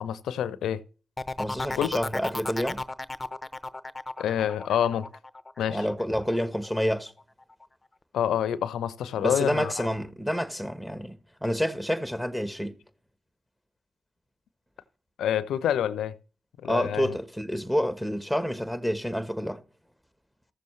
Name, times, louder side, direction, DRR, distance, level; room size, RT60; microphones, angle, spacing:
voice 1, 0.0-0.8 1.8-1.9 4.2-5.1 5.6-5.8 8.1-9.9 15.2-16.2 16.6-17.1, left 9 dB, 80° left, 0.6 m, -27 dB
sound 1, 1.2-6.8 7.2-7.6, left 2 dB, 25° left, 0.7 m, -35 dB
voice 2, 1.4-2.8 5.7-7.1 9.2-12.8 16.6-19.6, equal, 5° right, 1.4 m, -28 dB
14.5 x 6.9 x 3.2 m
hypercardioid pair, 40°, 0 cm